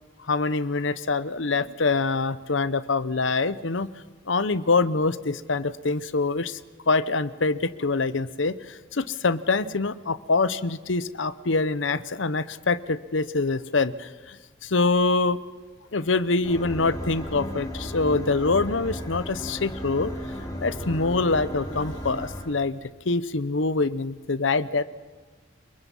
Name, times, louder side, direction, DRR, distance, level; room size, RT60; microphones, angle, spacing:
voice 1, 0.3-3.9 4.3-6.6 6.9-14.4 14.6-15.4 15.9-20.1 20.6-24.8, left 3 dB, 80° left, 15 dB, 0.9 m, -25 dB
sound 1, 16.4-22.4, equal, 20° left, 3.9 m, -35 dB
29.0 x 23.0 x 5.5 m, 1.4 s
head